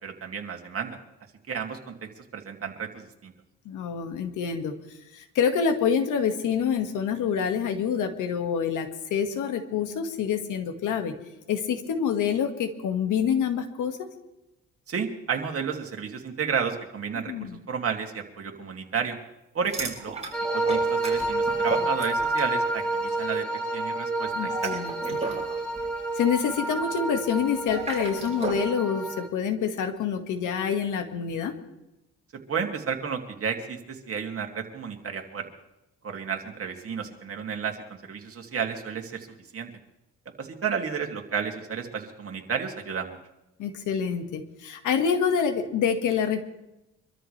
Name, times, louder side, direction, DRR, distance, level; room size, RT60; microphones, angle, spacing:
voice 1, 0.0-1.0 1.5-3.3 14.9-19.2 19.5-20.1 20.5-23.5 23.7-24.7 25.1-25.2 32.5-35.5 36.0-37.8 38.1-39.3 39.5-39.7 40.4-43.2, right 6 dB, 50° right, 2 dB, 2.6 m, -32 dB
voice 2, 3.7-4.7 5.1-11.1 11.5-14.1 17.3-17.6 24.4-25.2 26.2-31.5 43.6-46.4, left 7 dB, 85° left, 7 dB, 2.0 m, -27 dB
sound 1, 19.6-22.6 22.8-23.2 24.3-28.7, right 3 dB, 20° right, 5.2 m, -35 dB
sound 2, 20.3-29.3, right 2 dB, 5° left, 2.3 m, -29 dB
25.0 x 13.5 x 3.4 m, 0.93 s
cardioid pair, 90°, 30 cm